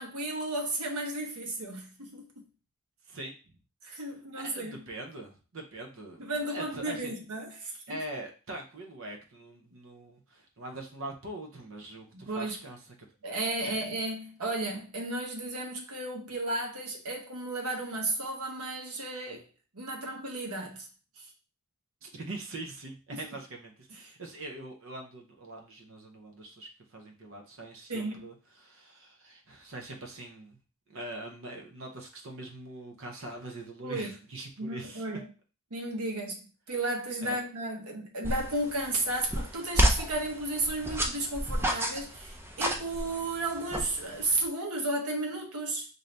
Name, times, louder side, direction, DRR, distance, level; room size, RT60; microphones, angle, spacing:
voice 1, 0.0-2.4 3.8-4.8 6.2-8.0 12.1-12.6 13.2-19.5 19.7-20.9 21.2-21.3 23.1-23.2 23.9-24.1 27.9-28.3 33.8-34.1 34.6-35.3 35.7-36.4 36.7-45.9, right 2 dB, 85° right, 1.0 m, -34 dB
voice 2, 4.3-7.1 7.9-12.8 13.6-13.8 22.0-28.3 28.6-30.6 30.9-35.2 37.2-37.4, right 2 dB, 60° right, 0.7 m, -43 dB
sound 1, 38.2-44.4, equal, 10° right, 0.4 m, -31 dB
3.9 x 2.7 x 3.3 m
head